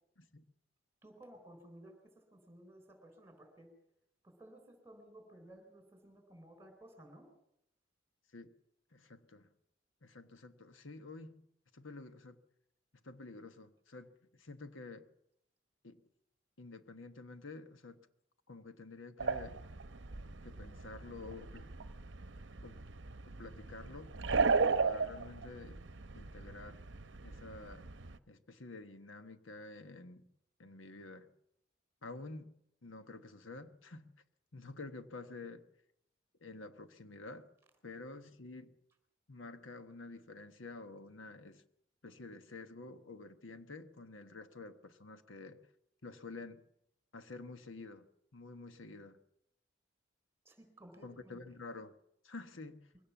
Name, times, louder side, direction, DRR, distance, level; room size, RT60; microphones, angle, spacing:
voice 1, 1.0-3.7 4.2-7.3 50.4-51.3, right 1 dB, 15° right, 7 dB, 4.0 m, -56 dB
voice 2, 8.9-9.5 10.0-11.4 11.7-12.4 13.0-15.1 15.8-16.0 16.6-18.1 18.5-19.6 20.4-21.7 22.6-22.8 23.3-24.1 24.6-25.8 26.1-26.8 27.2-27.9 28.3-30.3 30.6-31.3 32.0-32.5 32.8-34.1 34.5-35.7 36.4-37.5 37.8-38.7 39.3-41.6 42.0-45.6 46.0-46.6 47.1-48.1 48.3-49.2 51.0-51.9 52.2-52.9, left 3 dB, 85° left, 9 dB, 1.2 m, -49 dB
sound 1, 19.2-28.2, right 4 dB, 70° right, 0.8 m, -36 dB
22.5 x 17.5 x 7.1 m, 0.78 s
head